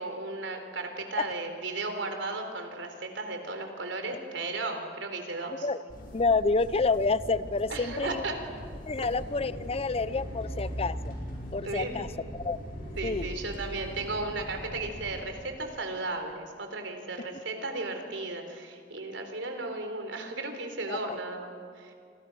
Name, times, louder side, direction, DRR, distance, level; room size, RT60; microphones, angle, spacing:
voice 1, 0.0-5.7 7.7-8.4 9.0-9.1 11.6-12.1 13.0-21.9, right 2 dB, 90° right, 5 dB, 3.9 m, -35 dB
voice 2, 5.5-5.8 6.1-8.2 8.9-11.1 11.5-12.1 12.3-12.6 13.0-13.3 20.9-21.2, left 3 dB, 35° left, 16 dB, 0.6 m, -28 dB
sound 1, 5.9-15.2, equal, 50° left, 7.0 m, -40 dB
29.0 x 26.0 x 6.3 m, 2.2 s
head